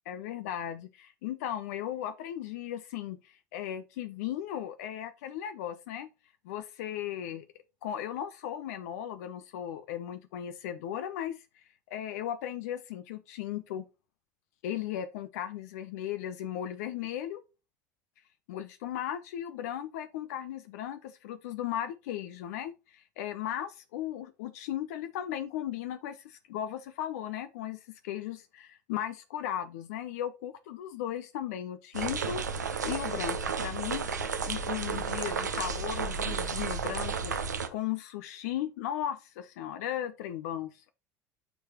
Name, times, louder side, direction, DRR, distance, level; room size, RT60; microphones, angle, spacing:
voice 1, 0.1-6.1 6.4-7.5 7.8-11.4 11.9-13.8 14.6-17.4 18.5-32.5 32.8-34.1 34.4-37.3 37.7-40.7, left 11 dB, 70° left, 0.7 m, -36 dB
sound 1, 31.9-37.7, right 5 dB, 85° right, 0.8 m, -32 dB
9.0 x 4.8 x 3.0 m
figure-of-eight pair, 70°, 9 cm